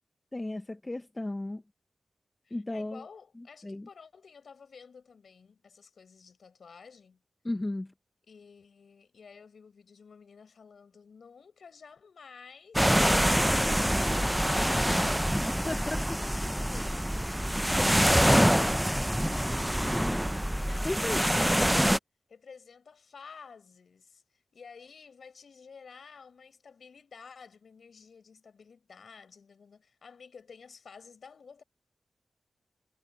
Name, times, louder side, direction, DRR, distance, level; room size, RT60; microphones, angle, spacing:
voice 1, 0.3-1.6 2.5-3.0 3.4-3.9 7.4-7.9 15.7-16.1 18.0-18.6 20.8-21.2, left 2 dB, 25° left, 1.0 m, -34 dB
voice 2, 2.4-7.2 8.3-12.9 15.3-17.2 20.5-21.8 22.3-31.6, left 5 dB, 80° left, 5.8 m, -52 dB
sound 1, 12.8-22.0, equal, 5° right, 0.5 m, -25 dB
cardioid pair, 70°, 0 cm